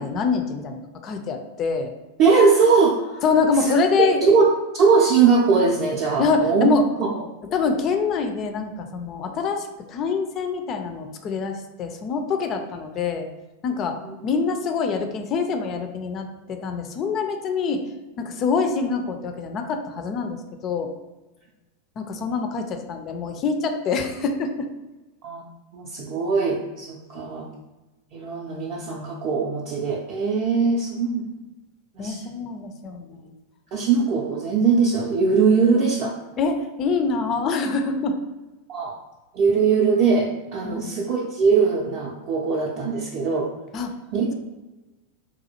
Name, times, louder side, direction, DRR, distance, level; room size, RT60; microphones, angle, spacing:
voice 1, 0.0-1.9 3.2-4.2 6.2-6.9 7.5-13.3 13.6-14.0 14.2-17.9 18.2-20.9 22.0-24.7 32.0-33.3 36.4-38.2 40.6-41.1 43.7-43.9, left 4 dB, 30° left, 6 dB, 0.3 m, -25 dB
voice 2, 2.2-3.2 3.6-4.4 4.7-6.7 7.0-7.1 14.0-14.1 25.2-25.4 25.7-27.5 28.1-31.3 32.0-32.2 33.7-36.1 38.7-38.9 39.3-43.5 44.1-44.3, right 5 dB, 40° right, -3 dB, 0.4 m, -21 dB
4.0 x 2.2 x 2.8 m, 1.1 s
figure-of-eight pair, 90°, 0 cm